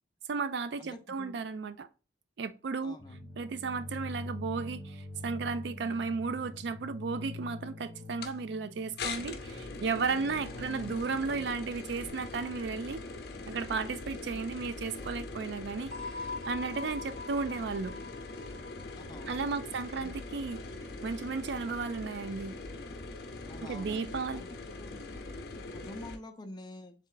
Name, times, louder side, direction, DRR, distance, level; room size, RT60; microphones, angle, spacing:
voice 1, 0.3-1.9 2.4-3.0 3.4-13.0 13.5-16.2 16.5-17.9 19.3-20.6 21.0-22.6 23.6-24.4, right 4 dB, 65° right, 0.4 m, -34 dB
voice 2, 0.8-1.5 2.8-3.3 10.5-11.0 19.0-19.6 20.0-20.1 23.4-24.0 24.3-24.5 24.8-25.0 25.7-26.9, left 1 dB, 25° left, 0.5 m, -47 dB
sound 1, 3.0-12.1, left 2 dB, 15° right, 1.7 m, -45 dB
sound 2, 8.2-8.3 9.0-26.2, left 3 dB, 60° left, 0.6 m, -42 dB
sound 3, 15.9-20.5, left 3 dB, 40° right, 1.3 m, -44 dB
3.5 x 3.2 x 3.8 m
head